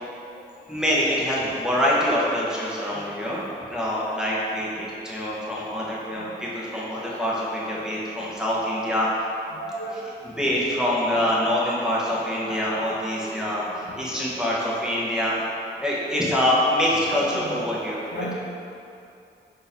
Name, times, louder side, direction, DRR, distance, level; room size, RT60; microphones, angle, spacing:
voice 1, 0.7-3.4 3.7-9.1 10.2-15.4 15.8-18.3, equal, 5° right, -7 dB, 1.0 m, -25 dB
voice 2, 2.9-3.4 5.8-6.2 6.7-7.2 8.2-8.3 9.5-10.1 10.7-10.8 11.4-11.5 11.9-12.2 12.4-12.9 13.1-14.0 17.0-17.6 18.1-18.3, equal, 65° left, -4 dB, 0.7 m, -38 dB
3.7 x 2.7 x 4.2 m, 2.6 s
cardioid pair, 60°, 19 cm